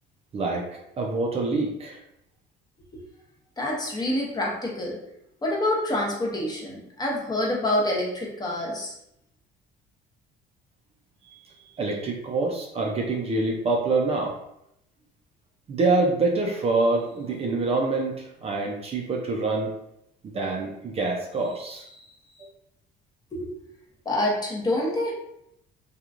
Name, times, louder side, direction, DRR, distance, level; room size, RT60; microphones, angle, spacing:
voice 1, 0.3-2.0 11.8-14.4 15.7-19.7 20.2-22.0 22.4-22.5, right 3 dB, 30° right, 0 dB, 0.4 m, -26 dB
voice 2, 3.6-5.0 5.4-8.9 23.3-23.5 24.1-25.1, left 1 dB, 20° left, -2 dB, 0.7 m, -27 dB
2.9 x 2.3 x 2.4 m, 0.78 s
cardioid pair, 125°, 19 cm